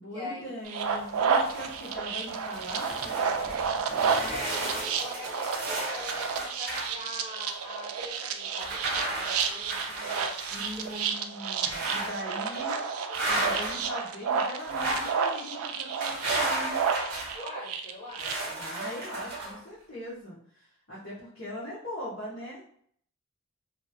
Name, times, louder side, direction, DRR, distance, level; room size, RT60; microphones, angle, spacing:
voice 1, 0.0-2.9 10.5-12.8 13.3-16.8 18.6-22.6, left 1 dB, 70° left, -11 dB, 1.2 m, -40 dB
sound 1, 0.7-18.3, right 6 dB, 70° right, 0.3 m, -31 dB
sound 2, 1.0-1.9 2.3-6.9 7.5-7.6 8.6-11.1 11.6-12.2 12.5-12.7 13.1-13.9 14.6-15.2 16.0-17.4 18.2-19.6, right 2 dB, 45° right, 1.0 m, -34 dB
voice 2, 4.2-10.4 10.7-11.0 11.4-11.5 13.0-13.7 17.3-18.6, left 1 dB, 15° left, -14 dB, 1.4 m, -42 dB
2.9 x 2.3 x 2.7 m, 0.63 s
head